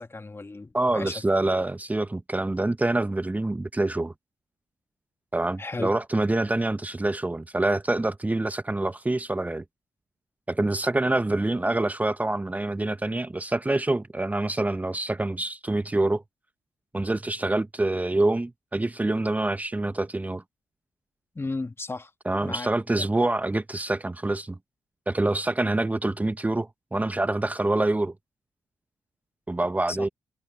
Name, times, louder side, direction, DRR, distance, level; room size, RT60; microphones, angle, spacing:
voice 1, 0.0-1.2 5.6-5.9 21.3-22.1 22.4-23.0 29.9-30.1, left 3 dB, 30° left, 2.0 m, -35 dB
voice 2, 0.7-4.1 5.3-9.6 10.5-16.2 16.9-20.4 22.3-24.6 25.1-28.1 29.5-30.1, right 2 dB, 20° right, 1.0 m, -26 dB
hypercardioid pair, 40°, 9 cm